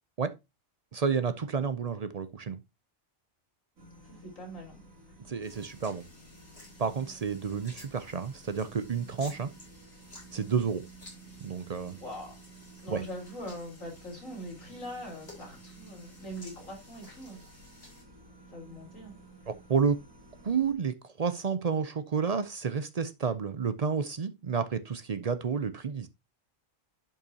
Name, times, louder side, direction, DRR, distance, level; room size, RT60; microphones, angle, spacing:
voice 1, 0.9-2.6 5.3-6.1 6.8-9.5 10.3-10.8 11.4-12.0 12.9-13.0 19.5-20.0 20.4-26.1, right 6 dB, 55° right, 0.4 m, -30 dB
sound 1, 3.8-20.7, right 3 dB, 90° right, 2.9 m, -53 dB
voice 2, 4.0-4.8 11.8-12.3 12.8-17.5 18.5-19.2, equal, 75° left, 4.0 m, -42 dB
sound 2, 5.4-18.0, left 2 dB, 50° left, 4.1 m, -54 dB
11.0 x 5.5 x 2.8 m
omnidirectional pair, 1.4 m